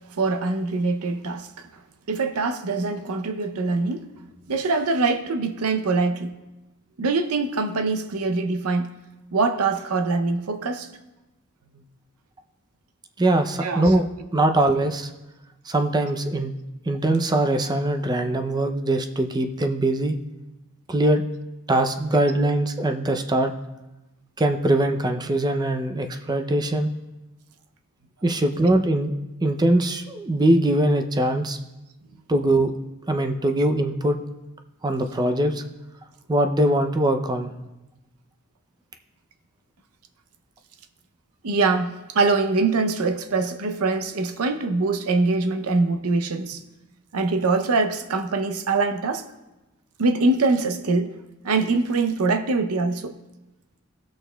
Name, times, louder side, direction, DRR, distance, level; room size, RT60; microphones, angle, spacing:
voice 1, 0.2-1.7 2.1-4.1 4.5-6.4 7.0-8.9 9.3-10.9 13.6-13.9 41.4-46.6 47.1-49.3 50.0-51.1 51.4-53.2, right 3 dB, 75° right, 0.6 m, -23 dB
voice 2, 13.2-14.0 14.3-15.1 15.7-16.5 16.9-20.1 20.9-21.2 21.7-23.5 24.4-26.9 28.2-29.1 29.4-31.6 32.3-32.7 33.1-34.2 34.8-35.6 36.3-37.5, right 1 dB, 20° right, 0.5 m, -22 dB
18.0 x 6.4 x 2.2 m
head